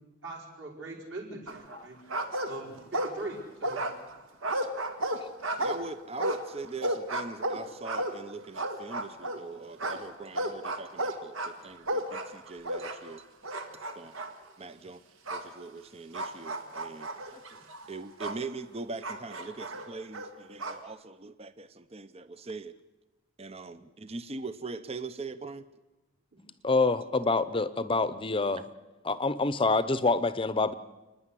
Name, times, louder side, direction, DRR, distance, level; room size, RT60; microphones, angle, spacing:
voice 1, 0.2-2.0 2.5-3.8 14.8-14.9 26.3-26.4, right 2 dB, 55° right, -4 dB, 5.3 m, -41 dB
sound 1, 1.5-1.8 2.1-3.3 3.6-9.4 9.8-13.2 13.4-14.3 15.3-15.5 16.1-18.4 19.0-20.8, right 1 dB, 75° right, 1.8 m, -33 dB
voice 2, 5.6-13.2 13.7-14.1 14.6-15.0 15.3-17.1 17.9-22.7 23.4-25.6, right 3 dB, 30° right, 12 dB, 0.6 m, -41 dB
voice 3, 26.6-28.6 29.0-30.7, left 3 dB, 25° left, 14 dB, 0.7 m, -26 dB
29.0 x 10.0 x 9.9 m, 1.1 s
head